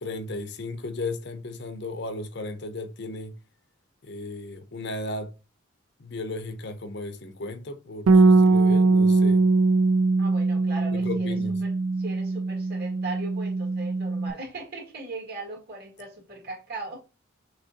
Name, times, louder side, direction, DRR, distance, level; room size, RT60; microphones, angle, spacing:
voice 1, 0.0-3.3 4.0-5.3 6.0-9.4 10.9-11.6, left 2 dB, 55° left, 0.6 m, -35 dB
Bass guitar, 8.1-14.3, right 3 dB, 85° right, 0.4 m, -21 dB
voice 2, 10.2-17.0, right 2 dB, 50° right, 2.1 m, -39 dB
6.3 x 2.9 x 2.8 m
head